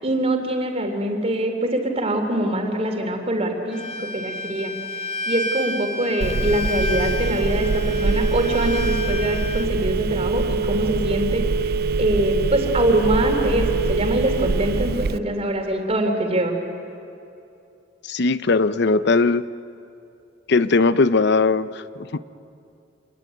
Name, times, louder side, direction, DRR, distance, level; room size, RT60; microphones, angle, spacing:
voice 1, 0.0-4.7 5.3-11.7 12.0-16.5, right 1 dB, 35° right, 4 dB, 3.4 m, -24 dB
Bowed string instrument, 3.7-9.7, left 2 dB, 35° left, 1.4 m, -31 dB
Telephone, 6.2-15.2, right 4 dB, 55° right, 0.5 m, -23 dB
voice 2, 18.0-19.4 20.5-22.2, left 3 dB, 65° left, 14 dB, 0.7 m, -19 dB
27.0 x 21.0 x 9.3 m, 2.7 s
head